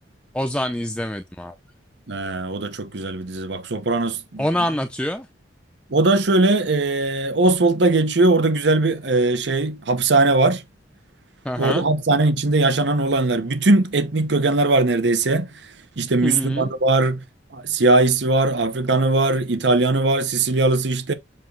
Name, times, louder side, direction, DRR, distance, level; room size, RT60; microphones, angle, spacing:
voice 1, 0.3-1.5 4.4-5.3 11.4-11.9 16.2-16.7, left 1 dB, 5° left, 0.5 m, -25 dB
voice 2, 2.1-4.4 5.9-10.6 11.6-17.2 17.5-21.1, right 2 dB, 70° right, 0.9 m, -20 dB
7.6 x 2.9 x 4.6 m
head